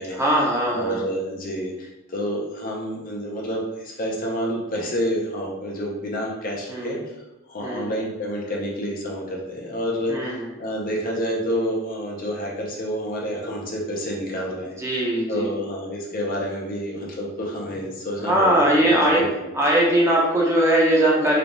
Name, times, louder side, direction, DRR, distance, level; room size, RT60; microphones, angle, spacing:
voice 1, 0.2-1.0 6.7-7.0 7.6-7.9 10.1-10.5 14.8-15.5 18.3-19.2 19.5-21.4, right 1 dB, 15° right, -4 dB, 0.7 m, -20 dB
voice 2, 0.7-7.0 7.5-15.0 15.3-19.5, equal, 40° left, -2 dB, 0.7 m, -29 dB
3.3 x 2.4 x 3.9 m, 0.96 s
head